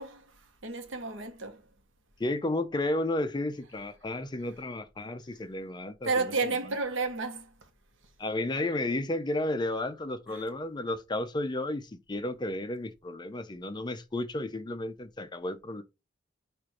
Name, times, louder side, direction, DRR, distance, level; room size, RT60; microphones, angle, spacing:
voice 1, 0.0-1.6 6.0-7.5 10.3-10.4, right 4 dB, 85° right, 1.0 m, -32 dB
voice 2, 2.2-6.3 8.2-15.8, left 2 dB, 25° left, 0.5 m, -32 dB
4.4 x 2.5 x 4.8 m
head